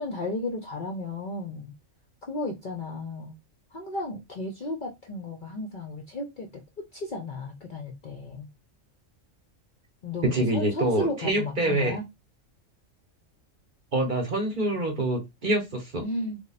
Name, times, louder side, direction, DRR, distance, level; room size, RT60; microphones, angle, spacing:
voice 1, 0.0-1.7 2.3-3.3 3.7-8.5 10.0-12.0 16.0-16.4, left 2 dB, 50° left, 0.6 m, -34 dB
voice 2, 10.2-12.0 13.9-16.0, right 1 dB, 45° right, 0.9 m, -26 dB
3.3 x 2.2 x 4.0 m
omnidirectional pair, 1.4 m